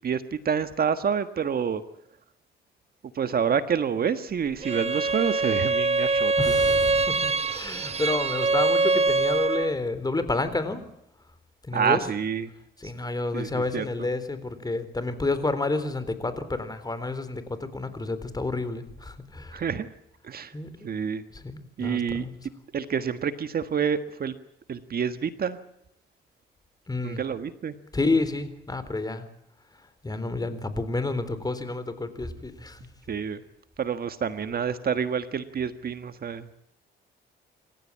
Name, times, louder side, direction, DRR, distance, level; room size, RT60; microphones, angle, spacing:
voice 1, 0.0-1.8 3.1-6.5 7.9-8.0 11.7-12.5 13.3-14.1 19.5-19.9 20.2-20.5 20.8-21.2 21.8-22.3 22.7-24.3 24.7-25.6 27.0-27.8 33.1-33.4 33.8-36.5, right 7 dB, 50° right, 10 dB, 1.5 m, -28 dB
Bowed string instrument, 4.6-9.8, right 3 dB, 30° right, 1.2 m, -24 dB
voice 2, 6.4-10.8 11.7-12.0 12.8-19.6 20.5-21.0 21.3-21.5 21.8-22.3 26.9-27.2 27.9-29.2 30.0-32.8, left 2 dB, 20° left, 12 dB, 3.8 m, -30 dB
28.0 x 15.0 x 8.6 m, 0.79 s
cardioid pair, 90°, 20 cm